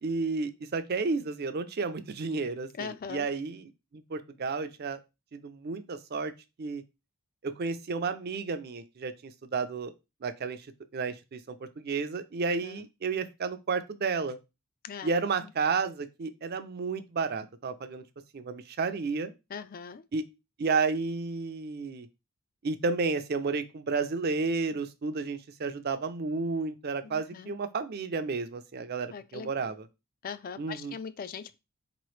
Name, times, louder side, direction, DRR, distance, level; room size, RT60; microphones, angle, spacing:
voice 1, 0.0-3.6 3.9-5.0 5.3-6.3 6.6-6.8 7.4-9.9 10.2-10.7 10.9-14.4 15.0-18.0 18.3-19.3 20.1-20.2 20.6-22.1 22.6-29.8 30.6-30.9, right 4 dB, 45° right, 0.4 m, -32 dB
voice 2, 2.7-3.3 12.6-12.9 14.8-15.1 15.4-15.5 19.5-20.0 27.0-27.5 29.1-29.7 30.2-31.5, left 6 dB, 40° left, 0.3 m, -40 dB
4.5 x 3.0 x 3.1 m
head